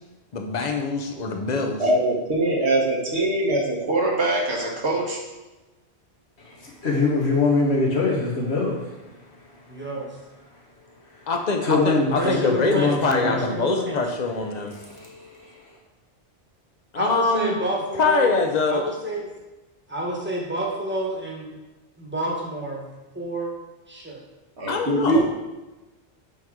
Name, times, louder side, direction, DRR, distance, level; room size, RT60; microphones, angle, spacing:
voice 1, 0.3-1.8 11.3-14.7 16.9-17.5 18.0-18.9 24.7-25.2, left 4 dB, 45° left, 4 dB, 0.8 m, -24 dB
voice 2, 1.8-5.2 24.6-25.2, right 1 dB, 80° right, -2 dB, 1.5 m, -22 dB
voice 3, 6.4-8.8 11.6-13.5 14.8-15.5, left 3 dB, 75° left, -3 dB, 1.7 m, -23 dB
voice 4, 9.7-10.1 12.2-14.0 16.9-18.4 18.7-19.3 19.9-21.6 22.0-22.8 23.1-23.5 23.9-24.2, right 1 dB, 10° right, -2 dB, 1.2 m, -29 dB
7.7 x 4.7 x 3.7 m, 1.1 s
omnidirectional pair, 1.1 m